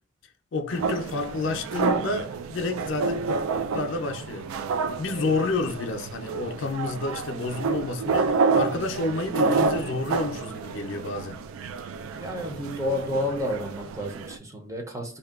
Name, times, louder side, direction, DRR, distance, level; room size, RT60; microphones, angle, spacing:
voice 1, 0.5-3.5 3.7-4.7 5.0-11.4, left 3 dB, 65° left, 0.4 m, -30 dB
sound 1, 0.7-14.4, right 4 dB, 85° right, 0.3 m, -29 dB
voice 2, 12.1-15.2, left 1 dB, 15° right, 0.5 m, -30 dB
2.6 x 2.2 x 2.3 m
head